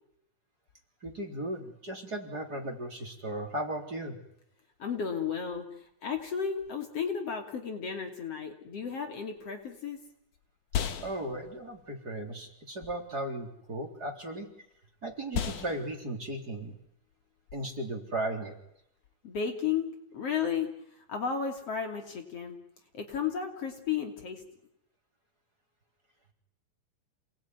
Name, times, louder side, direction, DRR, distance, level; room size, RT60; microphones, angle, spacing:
voice 1, 1.0-4.2 11.0-14.5 15.0-16.7 17.5-18.5, right 1 dB, 30° right, 3 dB, 3.9 m, -36 dB
voice 2, 4.8-10.0 19.2-22.6 22.9-24.4, left 7 dB, 45° left, 5 dB, 3.6 m, -33 dB
sound 1, 9.4-19.0, left 8 dB, 70° left, 3.3 m, -40 dB
28.5 x 20.0 x 9.7 m, 0.75 s
omnidirectional pair, 3.8 m